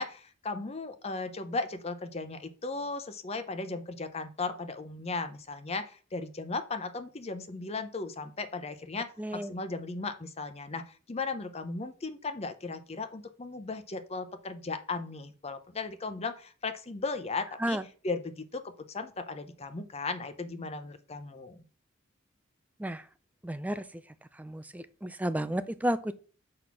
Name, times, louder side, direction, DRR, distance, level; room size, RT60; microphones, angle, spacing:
voice 1, 0.0-17.8 18.0-21.6, left 3 dB, 30° left, 10 dB, 0.7 m, -36 dB
voice 2, 9.2-9.5 17.6-17.8 22.8-23.0 23.4-23.8 24.4-26.2, right 1 dB, 10° right, 12 dB, 0.4 m, -32 dB
6.5 x 4.1 x 5.7 m, 0.39 s
head